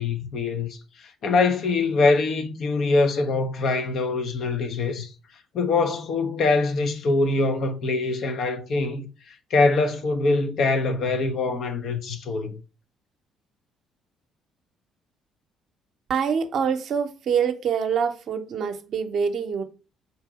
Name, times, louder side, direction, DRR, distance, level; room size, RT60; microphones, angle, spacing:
voice 1, 0.0-5.1 5.5-12.6, left 3 dB, 60° left, 0.7 m, -24 dB
voice 2, 16.1-19.6, right 7 dB, 60° right, 0.7 m, -25 dB
4.1 x 2.7 x 4.8 m
hypercardioid pair, 50°, 0 cm